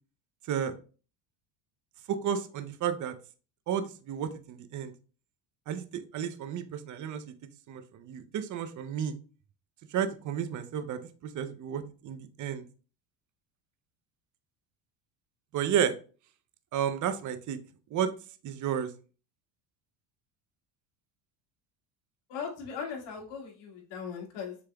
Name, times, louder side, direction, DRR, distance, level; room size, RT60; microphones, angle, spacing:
voice 1, 2.1-3.2 3.7-4.9 5.7-7.2 7.7-9.1 9.9-12.7 15.5-16.0 16.7-17.6 17.9-18.1 18.4-18.9, right 8 dB, 40° right, 11 dB, 0.6 m, -32 dB
voice 2, 22.3-24.6, left 6 dB, 65° left, -1 dB, 1.9 m, -38 dB
6.8 x 3.3 x 2.2 m, 0.37 s
supercardioid pair, 100°, 47 cm